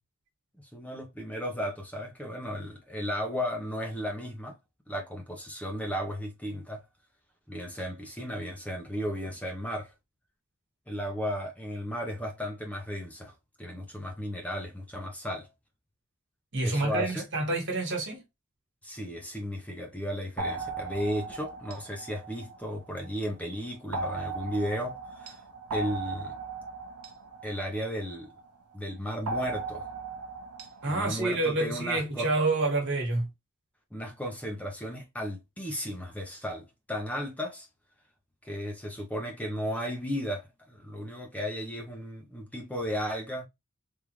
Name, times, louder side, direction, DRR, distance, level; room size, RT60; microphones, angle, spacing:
voice 1, 0.7-4.5 4.9-6.8 7.5-9.9 10.9-13.3 13.6-15.5 16.6-17.3 18.8-25.4 25.7-26.3 27.4-28.3 28.7-29.8 30.9-32.3 33.9-37.7 38.4-43.5, equal, 5° left, 0.7 m, -34 dB
voice 2, 16.5-18.2 30.8-33.3, right 2 dB, 55° right, 1.5 m, -28 dB
sound 1, 20.4-23.1 23.9-28.5 29.3-31.0, right 3 dB, 85° right, 0.7 m, -37 dB
3.5 x 2.5 x 3.0 m
head